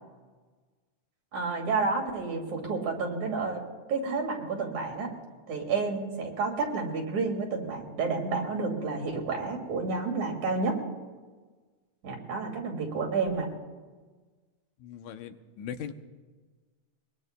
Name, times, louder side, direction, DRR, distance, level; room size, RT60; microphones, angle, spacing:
voice 1, 1.3-3.6 3.9-5.1 5.5-10.8 12.0-13.5, right 4 dB, 70° right, 1 dB, 3.8 m, -30 dB
voice 2, 14.8-15.9, left 8 dB, 80° left, 7 dB, 2.1 m, -39 dB
23.0 x 21.5 x 2.2 m, 1.4 s
omnidirectional pair, 3.4 m